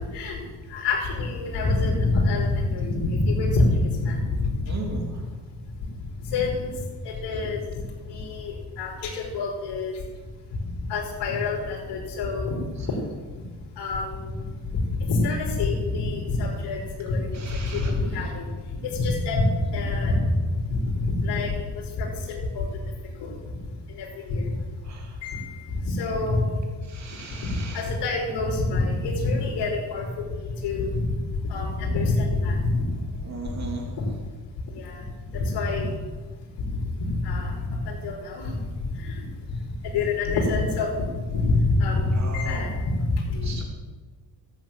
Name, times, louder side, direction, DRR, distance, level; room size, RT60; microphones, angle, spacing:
voice 1, 0.7-4.2 6.3-6.7 7.0-7.6 8.1-9.9 10.9-12.5 13.8-14.3 14.7-17.3 17.6-18.5 18.8-19.4 19.7-20.2 20.7-21.5 22.0-22.6 23.2-23.3 24.0-24.5 25.2-25.5 25.8-26.6 27.7-30.3 30.6-30.9 31.5-32.8 34.0-34.1 34.8-35.0 35.3-35.9 36.7-37.5 37.8-38.6 39.9-41.0 41.3-42.7 43.0-43.6, left 3 dB, 75° left, -3 dB, 4.7 m, -26 dB
voice 2, 4.7-5.0 17.3-17.9 24.8-25.2 26.9-27.9 33.2-33.9 42.1-42.7 43.4-43.6, right 3 dB, 40° right, 0 dB, 3.3 m, -37 dB
13.5 x 9.3 x 7.5 m, 1.4 s
cardioid pair, 90°, 41 cm